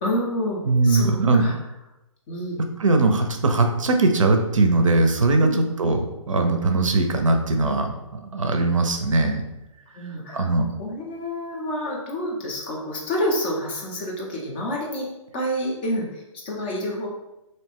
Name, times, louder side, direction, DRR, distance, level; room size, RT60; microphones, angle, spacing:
voice 1, 0.0-1.5 2.3-2.6 5.4-5.6 5.8-5.9 10.0-10.5 10.8-15.1 15.3-16.1 16.4-17.1, equal, 20° left, -2 dB, 0.4 m, -28 dB
voice 2, 0.6-1.4 2.8-7.9 8.3-9.4 10.3-10.6, right 3 dB, 70° right, 4 dB, 0.4 m, -20 dB
2.5 x 2.1 x 3.5 m, 0.94 s
figure-of-eight pair, 130°, 17 cm